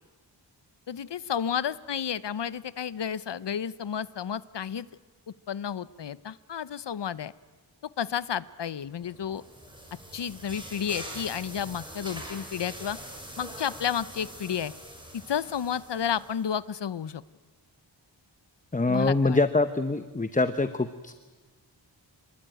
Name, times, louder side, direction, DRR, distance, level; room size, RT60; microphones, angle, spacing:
voice 1, 0.9-4.9 5.5-7.3 8.0-9.4 10.1-13.0 13.4-14.7 15.3-17.2 18.9-19.4, left 8 dB, 65° left, 16 dB, 0.9 m, -31 dB
sound 1, 9.0-16.6, equal, 10° right, 6.6 m, -43 dB
voice 2, 18.7-21.1, left 3 dB, 15° left, 10 dB, 0.8 m, -25 dB
27.0 x 21.5 x 9.2 m, 1.3 s
wide cardioid pair, 115°, 46 cm